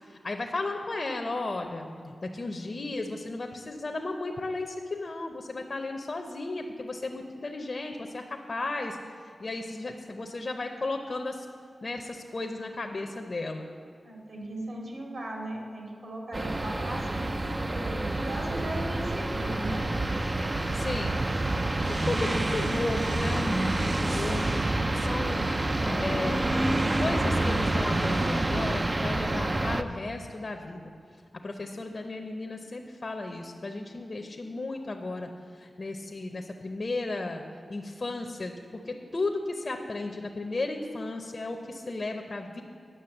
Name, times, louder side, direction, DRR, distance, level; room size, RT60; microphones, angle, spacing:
voice 1, 0.1-9.0 9.2-11.5 11.8-13.7 20.7-21.2 21.9-25.5 25.9-26.4 27.0-30.9 31.3-37.4 37.7-42.6, left 2 dB, 45° left, 3 dB, 0.7 m, -34 dB
voice 2, 14.0-19.9, right 1 dB, 60° right, 0 dB, 2.4 m, -37 dB
sound 1, 16.3-29.8, right 2 dB, 25° right, 0.4 m, -28 dB
10.0 x 6.5 x 7.8 m, 2.5 s
wide cardioid pair, 125°, 0 cm